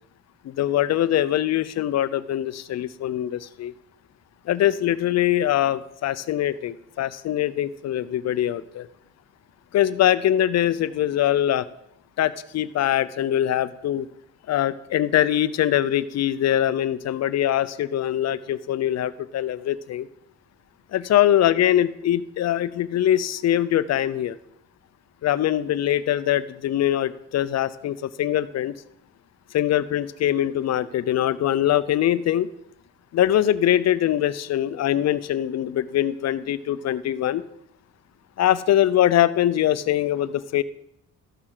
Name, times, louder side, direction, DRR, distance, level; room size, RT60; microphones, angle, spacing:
voice 1, 0.4-3.7 4.5-8.9 9.7-11.7 12.2-14.1 14.5-20.1 20.9-24.4 25.2-28.7 29.5-32.5 33.1-37.4 38.4-40.6, left 11 dB, 60° left, 15 dB, 0.6 m, -22 dB
13.5 x 6.2 x 3.9 m, 0.76 s
cardioid pair, 90°, 30 cm